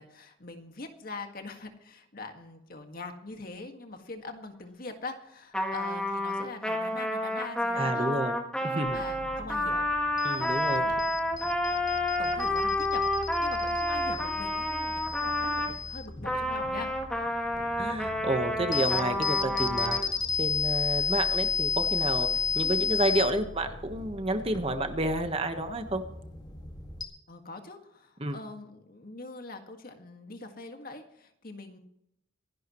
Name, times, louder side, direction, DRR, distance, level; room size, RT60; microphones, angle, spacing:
voice 1, 0.0-8.1 8.7-9.9 10.4-11.0 11.4-11.8 12.2-13.1 13.4-16.9 22.6-23.0 27.3-31.8, left 3 dB, 45° left, 5 dB, 1.9 m, -43 dB
Trumpet, 5.5-15.7 16.2-20.0, left 1 dB, 5° left, 1.9 m, -30 dB
voice 2, 7.8-8.3 8.6-9.0 10.2-10.8 17.8-20.0 20.4-22.3 22.5-26.0 28.2-28.4, right 1 dB, 30° right, 7 dB, 1.2 m, -30 dB
sound 1, 8.9-27.0, left 5 dB, 20° left, 2.0 m, -33 dB
26.0 x 11.5 x 3.1 m, 0.80 s
head